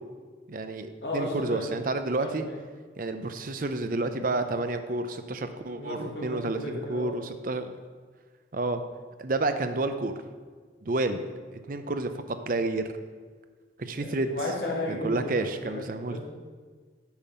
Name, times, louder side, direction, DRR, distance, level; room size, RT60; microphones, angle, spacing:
voice 1, 0.5-2.4 3.0-7.7 8.5-8.8 9.2-10.1 10.8-11.2 11.7-12.8 13.8-14.3 14.9-16.2, right 2 dB, 50° right, 9 dB, 0.6 m, -30 dB
voice 2, 1.0-1.7 2.2-2.6 5.8-7.1 13.9-16.2, left 1 dB, 65° left, -2 dB, 1.9 m, -34 dB
8.9 x 5.5 x 5.5 m, 1.5 s
head